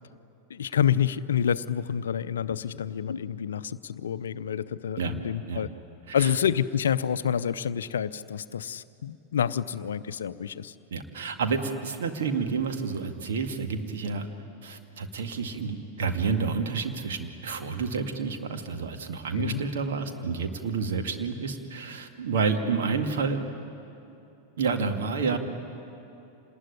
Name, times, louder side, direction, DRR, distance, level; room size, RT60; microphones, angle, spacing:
voice 1, 0.5-5.7 6.1-10.7 19.3-19.6, left 8 dB, 65° left, 14 dB, 0.6 m, -28 dB
voice 2, 10.9-14.3 14.6-23.4 24.6-25.4, right 5 dB, 60° right, 5 dB, 2.0 m, -29 dB
27.5 x 19.5 x 9.9 m, 2.8 s
figure-of-eight pair, 90°, 0 cm